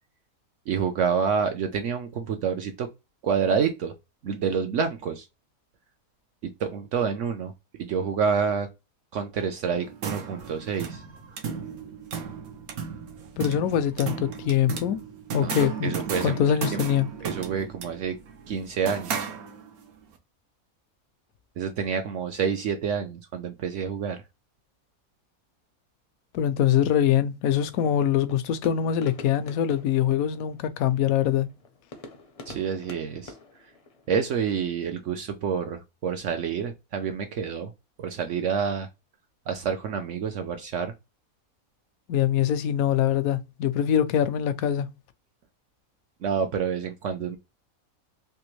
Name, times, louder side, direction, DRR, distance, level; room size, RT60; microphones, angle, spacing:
voice 1, 0.7-2.9 3.2-3.9 4.2-5.2 6.4-7.5 7.8-8.7 9.1-11.0 15.4-16.4 16.7-16.8 17.2-18.2 18.5-19.3 21.6-24.2 32.5-33.3 34.1-37.7 38.0-38.9 39.5-40.9 46.2-47.4, right 6 dB, 65° right, 0.9 m, -28 dB
sound 1, 9.7-19.9, right 6 dB, 85° right, 1.3 m, -35 dB
voice 2, 13.4-15.0 15.3-15.9 16.2-17.1 26.3-31.5 42.1-44.9, left 10 dB, 80° left, 1.0 m, -23 dB
sound 2, 27.6-34.3, left 3 dB, 40° left, 0.5 m, -47 dB
3.4 x 2.8 x 3.0 m
omnidirectional pair, 1.5 m